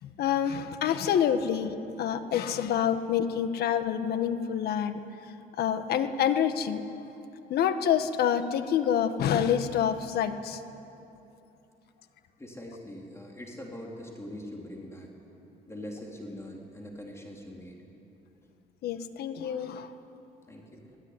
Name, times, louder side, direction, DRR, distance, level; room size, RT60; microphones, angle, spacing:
voice 1, 0.0-5.0 5.6-6.8 7.5-10.6 18.8-19.9, left 8 dB, 70° left, 9 dB, 1.6 m, -27 dB
voice 2, 12.4-15.1 15.7-17.8 20.5-21.0, left 1 dB, 15° left, -1 dB, 4.0 m, -42 dB
26.5 x 19.0 x 9.8 m, 2.9 s
cardioid pair, 110°, 17 cm